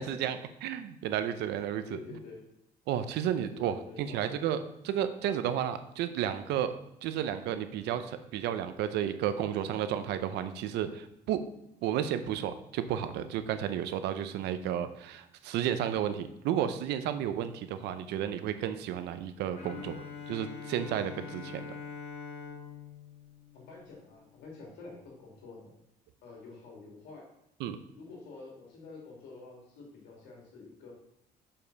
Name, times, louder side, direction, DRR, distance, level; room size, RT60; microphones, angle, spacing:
voice 1, 0.0-2.2 2.9-6.7 7.0-11.4 11.8-20.0 20.3-21.8 27.6-27.8, right 10 dB, 85° right, 11 dB, 0.7 m, -32 dB
voice 2, 1.9-2.5 3.5-4.5 17.7-17.9 23.5-25.8 26.2-27.3 28.0-30.9, left 3 dB, 85° left, -2 dB, 2.6 m, -48 dB
Bowed string instrument, 19.5-24.4, left 6 dB, 45° left, 2.5 m, -44 dB
6.8 x 5.6 x 4.0 m, 0.84 s
cardioid pair, 110°, 17 cm